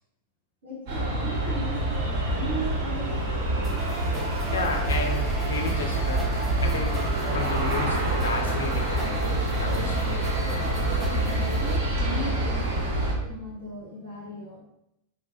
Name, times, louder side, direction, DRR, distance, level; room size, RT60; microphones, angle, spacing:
voice 1, 0.6-3.9 11.0-14.6, right 1 dB, 70° right, -6 dB, 1.0 m, -38 dB
Aircraft, 0.9-13.1, right 1 dB, 50° right, 0.5 m, -26 dB
sound 1, 3.6-11.8, right 3 dB, 10° right, 0.6 m, -36 dB
voice 2, 4.5-6.4 6.6-7.1 7.3-10.3, left 3 dB, 65° left, 3 dB, 0.3 m, -33 dB
2.4 x 2.3 x 2.2 m, 0.83 s
figure-of-eight pair, 90°, 0 cm